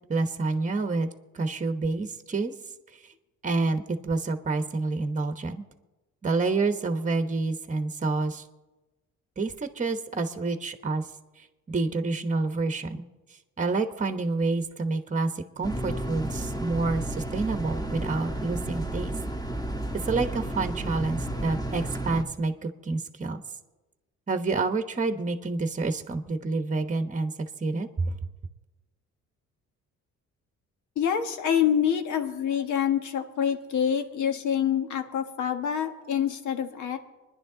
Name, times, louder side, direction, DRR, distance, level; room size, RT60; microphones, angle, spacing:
voice 1, 0.1-1.1 1.3-2.5 3.4-5.6 6.2-8.4 9.4-11.0 11.7-13.0 13.6-19.1 19.9-23.4 24.3-27.3 27.6-28.1, right 3 dB, 25° right, 8 dB, 1.1 m, -28 dB
sound 1, 15.6-22.2, right 1 dB, 10° left, 1.7 m, -32 dB
voice 2, 31.0-37.0, left 8 dB, 75° left, 7 dB, 1.5 m, -26 dB
24.5 x 10.5 x 3.9 m, 1.1 s
cardioid pair, 90°, 30 cm